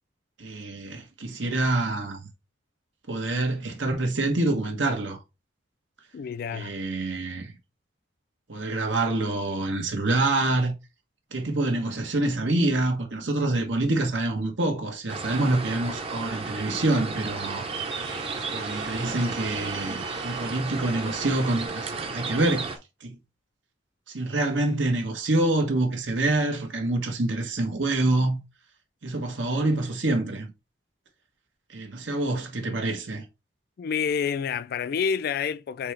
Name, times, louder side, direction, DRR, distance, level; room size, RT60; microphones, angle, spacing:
voice 1, 0.4-2.3 3.1-5.2 6.5-7.6 8.5-10.7 11.3-17.7 18.5-22.7 23.0-23.2 24.1-28.4 29.0-30.5 31.7-33.2, right 2 dB, 85° right, 1.2 m, -26 dB
voice 2, 6.1-6.7 33.8-35.9, left 6 dB, 55° left, 0.3 m, -28 dB
sound 1, 15.1-22.8, right 4 dB, 30° right, 0.7 m, -34 dB
sound 2, 16.7-21.7, right 5 dB, 65° right, 1.3 m, -41 dB
4.2 x 3.4 x 3.2 m
head